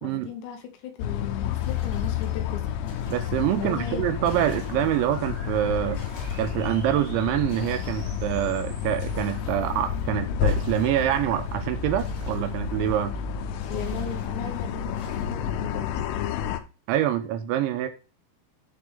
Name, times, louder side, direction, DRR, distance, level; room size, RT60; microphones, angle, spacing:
voice 1, 0.0-2.7 3.6-4.0 13.7-15.9, left 8 dB, 75° left, 2.9 m, -36 dB
sound 1, 1.0-16.6, left 8 dB, 90° left, 3.4 m, -30 dB
sound 2, 1.5-5.3 5.7-13.2 13.6-15.6, left 2 dB, 45° left, 6.4 m, -51 dB
voice 2, 3.1-6.0 6.4-13.1 16.9-17.9, right 12 dB, 80° right, 2.9 m, -26 dB
sound 3, 4.5-10.0, right 4 dB, 55° right, 2.0 m, -49 dB
13.0 x 4.7 x 3.6 m
omnidirectional pair, 5.6 m